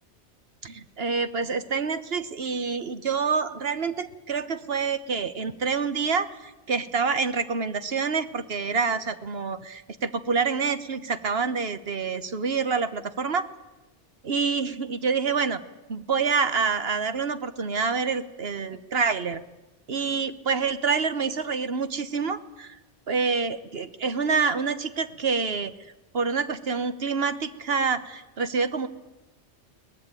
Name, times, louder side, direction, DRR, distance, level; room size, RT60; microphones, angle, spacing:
voice 1, 0.6-13.5 14.2-15.6 15.9-19.4 19.9-22.8 23.1-25.7 26.1-28.9, right 5 dB, 60° right, 12 dB, 1.4 m, -27 dB
22.5 x 18.5 x 9.1 m, 1.0 s
omnidirectional pair, 1.2 m